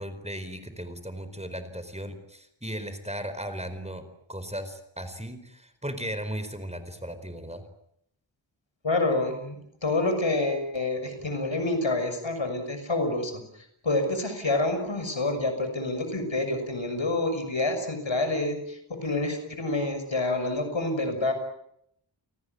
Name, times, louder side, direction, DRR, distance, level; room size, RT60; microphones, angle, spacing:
voice 1, 0.0-4.0 4.3-7.6, equal, 15° right, 10 dB, 4.6 m, -36 dB
voice 2, 8.8-13.4 13.8-21.3, left 2 dB, 75° left, 7 dB, 6.6 m, -28 dB
29.5 x 19.5 x 9.6 m, 0.75 s
wide cardioid pair, 50°, 46 cm